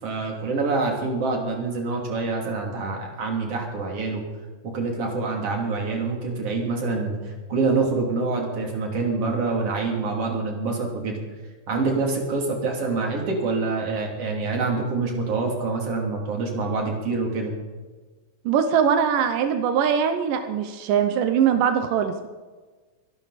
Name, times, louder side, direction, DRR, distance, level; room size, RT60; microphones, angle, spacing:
voice 1, 0.0-4.2 4.7-11.2 11.7-17.5, right 3 dB, 35° right, 0 dB, 3.4 m, -26 dB
voice 2, 18.5-22.3, right 8 dB, 80° right, 7 dB, 1.9 m, -22 dB
25.0 x 11.5 x 4.2 m, 1.4 s
omnidirectional pair, 5.0 m